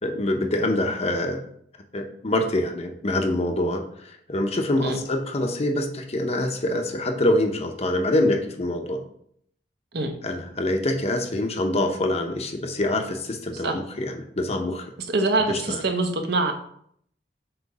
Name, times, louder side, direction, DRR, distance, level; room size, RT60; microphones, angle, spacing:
voice 1, 0.0-1.4 1.9-9.0 10.2-14.9 15.5-15.8, left 1 dB, 35° left, 4 dB, 0.8 m, -25 dB
voice 2, 15.1-16.5, right 2 dB, 65° right, 5 dB, 0.9 m, -24 dB
7.9 x 3.1 x 4.9 m, 0.67 s
head